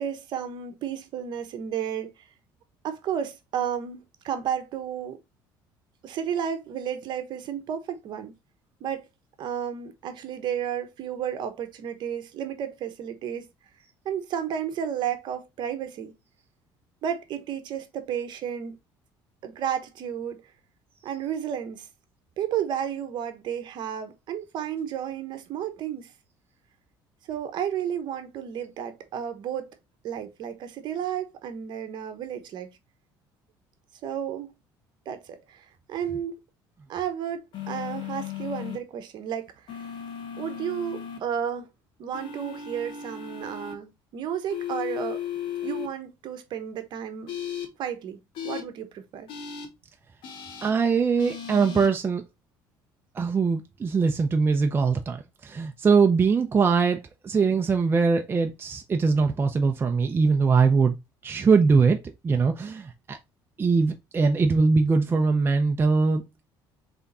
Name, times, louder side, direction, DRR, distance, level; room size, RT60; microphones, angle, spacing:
voice 1, 0.0-2.1 2.8-5.2 6.0-8.3 8.8-9.0 9.4-13.4 14.0-16.1 17.0-18.8 19.4-20.4 21.0-21.9 22.4-26.1 27.3-29.8 30.0-32.7 34.0-34.5 35.1-36.4 36.9-39.9 40.4-41.7 42.0-47.3 47.8-48.2 48.4-49.3, right 9 dB, 55° right, 1.0 m, -32 dB
sound 1, 37.5-38.8 39.7-41.2 42.1-43.7 44.5-45.9 47.3-47.7 48.3-48.6 49.3-49.7 50.2-50.7 51.2-51.9, left 9 dB, 65° left, 1.5 m, -35 dB
voice 2, 50.6-52.2 53.1-57.0 57.2-61.0 61.2-62.0 62.2-63.2 63.6-66.2, right 4 dB, 25° right, 0.6 m, -22 dB
3.6 x 3.5 x 4.1 m
cardioid pair, 115°, 9 cm